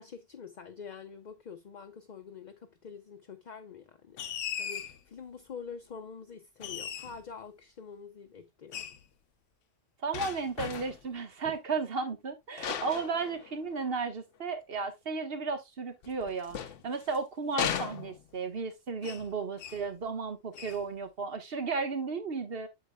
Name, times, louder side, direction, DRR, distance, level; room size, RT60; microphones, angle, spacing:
voice 1, 0.0-4.2 4.6-8.9 11.4-11.6, left 6 dB, 45° left, 0.7 m, -46 dB
sound 1, 4.2-5.0 6.6-7.3 8.7-9.0 10.1-11.1 12.6-13.8 16.0-17.2 17.6-18.5 19.0-19.3 19.6-19.9 20.5-20.9, left 8 dB, 80° left, 1.0 m, -37 dB
voice 2, 10.0-22.7, right 4 dB, 55° right, 1.4 m, -34 dB
8.5 x 7.0 x 2.2 m
omnidirectional pair, 1.2 m